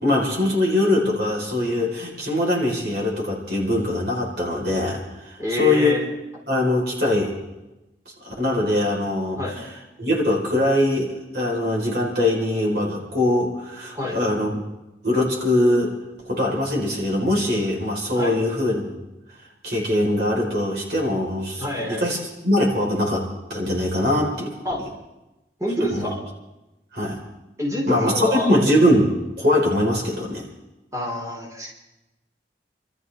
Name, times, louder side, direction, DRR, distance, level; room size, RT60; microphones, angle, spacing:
voice 1, 0.0-6.0 6.5-7.3 8.2-9.7 10.0-14.6 15.0-15.9 16.3-18.9 19.6-24.5 25.9-26.1 26.9-27.2 27.8-30.4, left 1 dB, 60° right, -2 dB, 4.5 m, -22 dB
voice 2, 5.4-6.0 9.4-9.5 13.9-14.2 18.1-18.3 21.6-22.0 24.6-24.9 25.6-26.2 27.6-28.5 30.9-31.7, left 1 dB, 15° right, -5 dB, 4.6 m, -26 dB
30.0 x 13.5 x 3.6 m, 0.99 s
head